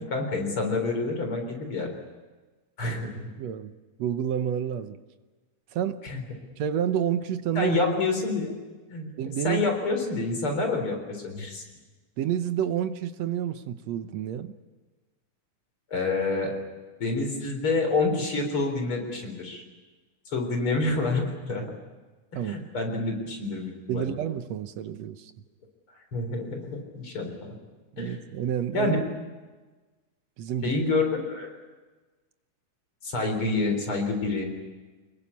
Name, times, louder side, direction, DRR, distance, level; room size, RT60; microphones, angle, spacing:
voice 1, 0.1-1.9 2.8-3.3 6.0-6.2 7.5-8.6 8.9-9.1 9.4-11.6 15.9-16.5 17.0-19.6 20.3-21.6 22.4-24.2 26.1-27.6 28.0-28.2 28.7-29.0 30.6-31.5 33.0-34.5, left 3 dB, 45° left, 4 dB, 4.6 m, -28 dB
voice 2, 3.4-3.7 4.0-5.0 5.7-6.0 6.6-7.8 9.2-9.7 12.2-14.5 22.4-22.7 23.9-25.3 27.9-29.0 30.4-30.7, right 9 dB, 70° right, 10 dB, 1.9 m, -29 dB
25.5 x 21.5 x 8.5 m, 1.3 s
omnidirectional pair, 3.5 m